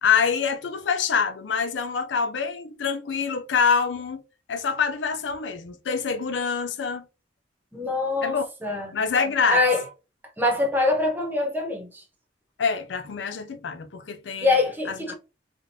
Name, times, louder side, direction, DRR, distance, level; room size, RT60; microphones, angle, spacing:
voice 1, 0.0-4.2 4.5-7.0 8.2-8.5 8.9-9.6 12.6-14.5 14.9-15.1, left 6 dB, 90° left, 0.5 m, -25 dB
voice 2, 7.7-9.0 9.5-9.8 10.4-12.0 14.4-15.1, left 2 dB, 10° right, 1.0 m, -24 dB
3.5 x 2.4 x 2.6 m
head